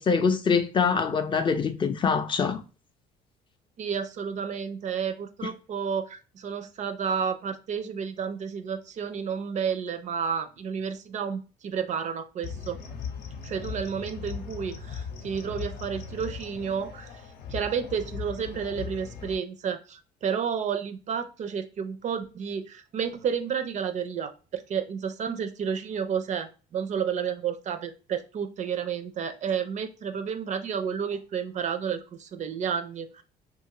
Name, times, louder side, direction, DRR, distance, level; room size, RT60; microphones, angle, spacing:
voice 1, 0.0-2.6, left 5 dB, 30° left, 0.4 m, -24 dB
voice 2, 3.8-12.8 13.4-17.1 17.5-33.2, right 7 dB, 45° right, 0.4 m, -31 dB
sound 1, 12.4-19.4, left 6 dB, 75° left, 0.7 m, -38 dB
2.8 x 2.4 x 2.8 m
cardioid pair, 110°, 17 cm